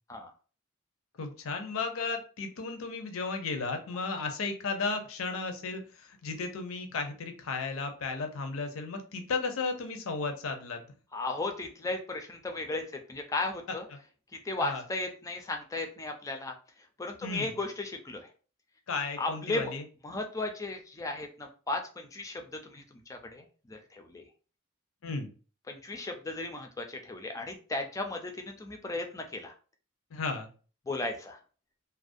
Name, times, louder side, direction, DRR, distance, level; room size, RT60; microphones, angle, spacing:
voice 1, 1.2-10.8 13.9-14.0 14.6-14.8 17.2-17.5 18.9-19.8 25.0-25.3 30.1-30.5, left 4 dB, 75° left, 6 dB, 0.5 m, -34 dB
voice 2, 11.1-12.8 13.1-13.8 14.4-16.5 17.0-18.3 19.2-19.7 20.0-22.8 23.1-24.2 25.7-29.5 30.9-31.4, left 2 dB, 15° left, 4 dB, 0.3 m, -35 dB
2.4 x 2.0 x 2.5 m, 0.38 s
head